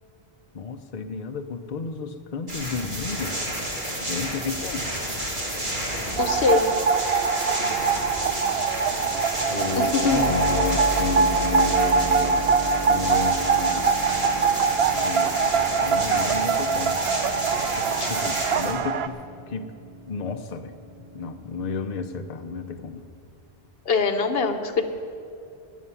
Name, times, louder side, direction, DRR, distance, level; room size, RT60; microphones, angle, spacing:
voice 1, 0.5-3.4 4.0-4.9 9.5-12.5 12.9-13.9 14.9-15.3 15.8-17.0 17.5-19.2 19.5-19.7 20.1-20.7 21.1-23.0, left 5 dB, 45° left, 6 dB, 0.8 m, -32 dB
sound 1, 2.5-18.7, right 1 dB, 50° right, 2.8 m, -31 dB
voice 2, 6.2-6.8 9.8-10.3 18.0-18.1 23.9-24.8, left 4 dB, 70° left, 8 dB, 1.1 m, -23 dB
sound 2, 6.2-19.1, right 6 dB, 75° right, 0.8 m, -23 dB
Keyboard (musical), 10.1-22.8, left 1 dB, 20° right, 4.5 m, -35 dB
12.5 x 8.4 x 9.7 m, 2.6 s
omnidirectional pair, 1.0 m